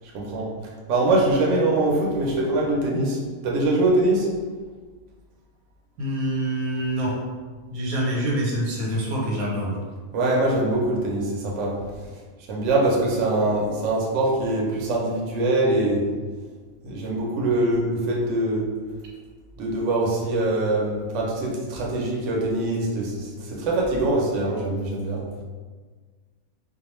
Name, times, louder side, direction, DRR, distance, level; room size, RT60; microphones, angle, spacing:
voice 1, 0.1-0.5 0.9-3.2 3.4-4.3 10.1-11.8 12.5-16.0 16.8-18.7 19.6-25.2, right 2 dB, 65° right, -3 dB, 0.8 m, -23 dB
voice 2, 6.0-7.1 7.7-9.7, right 1 dB, 85° right, -3 dB, 1.1 m, -26 dB
2.4 x 2.2 x 3.0 m, 1.5 s
omnidirectional pair, 1.5 m